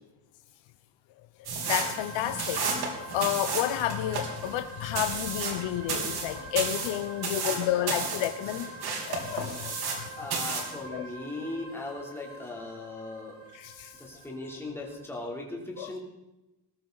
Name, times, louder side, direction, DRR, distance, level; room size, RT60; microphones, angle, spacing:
voice 1, 1.4-8.7 9.0-10.1 10.9-11.1 13.5-14.0 15.8-15.9, left 12 dB, 80° left, 9 dB, 0.9 m, -31 dB
sound 1, 1.4-10.0 10.3-10.7, right 4 dB, 55° right, 3.4 m, -32 dB
sound 2, 1.6-15.2, right 2 dB, 75° right, 3.6 m, -45 dB
voice 2, 10.2-13.3 14.0-16.0, left 2 dB, 5° left, -2 dB, 3.2 m, -38 dB
19.5 x 13.5 x 4.0 m, 1.0 s
cardioid pair, 165°, 45 cm